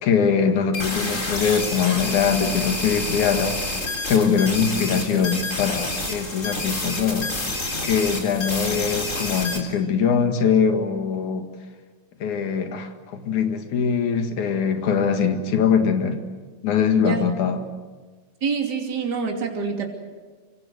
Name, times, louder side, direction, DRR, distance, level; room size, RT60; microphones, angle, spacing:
voice 1, 0.0-7.3 7.8-11.5 12.2-16.2 16.6-17.6, left 6 dB, 90° left, 6 dB, 3.3 m, -22 dB
sound 1, 0.7-9.6, left 2 dB, 25° left, 4.2 m, -28 dB
voice 2, 18.4-19.9, right 6 dB, 35° right, 2 dB, 3.2 m, -26 dB
25.5 x 24.5 x 7.9 m, 1.4 s
omnidirectional pair, 3.3 m